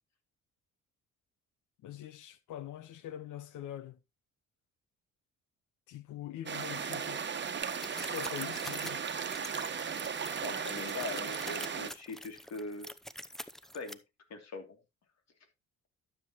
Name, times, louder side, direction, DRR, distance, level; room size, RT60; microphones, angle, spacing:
voice 1, 1.8-4.0 5.9-7.3 8.0-9.0, left 11 dB, 90° left, 1.3 m, -43 dB
sound 1, 6.5-11.9, right 6 dB, 35° right, 1.2 m, -36 dB
sound 2, 7.6-13.9, equal, ahead, 0.7 m, -46 dB
voice 2, 10.4-12.9 13.7-14.0 14.3-14.8, left 3 dB, 60° left, 2.9 m, -41 dB
12.0 x 7.4 x 3.0 m
cardioid pair, 90°, 30 cm